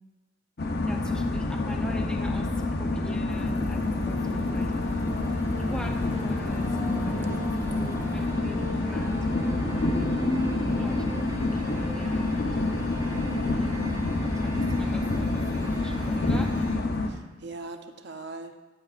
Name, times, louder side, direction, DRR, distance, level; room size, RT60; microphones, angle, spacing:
sound 1, 0.6-17.1, left 2 dB, 55° left, 0.7 m, -28 dB
voice 1, 0.8-5.0 5.7-7.8 8.1-9.2 10.1-12.6 13.0-13.7 14.2-16.6, left 1 dB, 5° left, 2 dB, 0.6 m, -42 dB
sound 2, 3.1-16.8, equal, 20° right, 1.9 m, -38 dB
sound 3, 3.3-8.3, equal, 35° left, 1.2 m, -39 dB
voice 2, 13.2-13.6 17.1-18.5, right 3 dB, 60° right, 8 dB, 0.6 m, -40 dB
12.5 x 7.5 x 2.4 m, 1.2 s
head